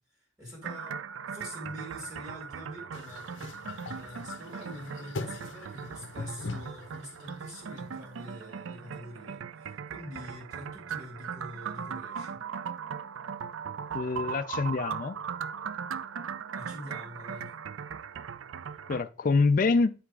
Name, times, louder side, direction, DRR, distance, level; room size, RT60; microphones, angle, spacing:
voice 1, 0.4-3.3 3.8-12.4 16.5-17.5, equal, 20° right, 2.3 m, -45 dB
sound 1, 0.6-19.0, right 7 dB, 80° right, 0.4 m, -39 dB
sound 2, 2.9-8.3, left 3 dB, 70° left, 0.7 m, -41 dB
voice 2, 13.9-15.2 18.9-19.9, left 4 dB, 40° left, 0.4 m, -25 dB
10.0 x 3.3 x 4.7 m
head